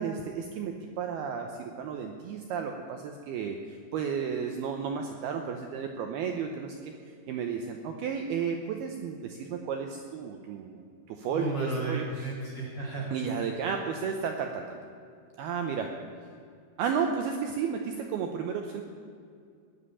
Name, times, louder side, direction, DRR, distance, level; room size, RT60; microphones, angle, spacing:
voice 1, 0.0-6.8 7.3-10.8 11.1-12.3 13.1-14.8 15.4-15.9 16.8-18.8, right 6 dB, 75° right, 4 dB, 2.4 m, -33 dB
voice 2, 11.3-13.1, right 2 dB, 35° left, -4 dB, 2.1 m, -33 dB
19.0 x 7.3 x 9.7 m, 2.3 s
omnidirectional pair, 5.4 m